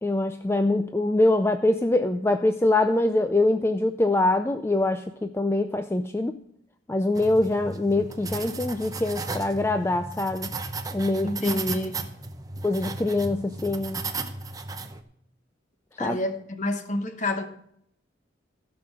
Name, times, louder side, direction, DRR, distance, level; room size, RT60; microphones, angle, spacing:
voice 1, 0.0-6.3 6.9-10.5 10.9-11.9 12.6-14.0 16.0-16.2, left 2 dB, 15° left, 8 dB, 0.3 m, -24 dB
sound 1, 7.1-15.0, right 3 dB, 20° right, 0.6 m, -35 dB
voice 2, 11.2-12.0 16.0-17.5, left 1 dB, 40° left, 7 dB, 1.0 m, -29 dB
15.0 x 6.0 x 6.2 m, 0.71 s
head